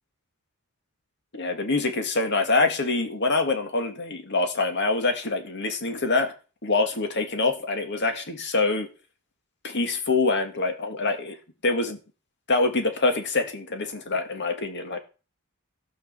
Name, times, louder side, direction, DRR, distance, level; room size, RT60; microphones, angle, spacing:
voice 1, 1.3-6.3 6.6-8.9 9.6-11.4 11.6-12.0 12.5-15.0, left 3 dB, 55° left, 6 dB, 2.2 m, -25 dB
15.5 x 5.4 x 6.9 m, 0.34 s
head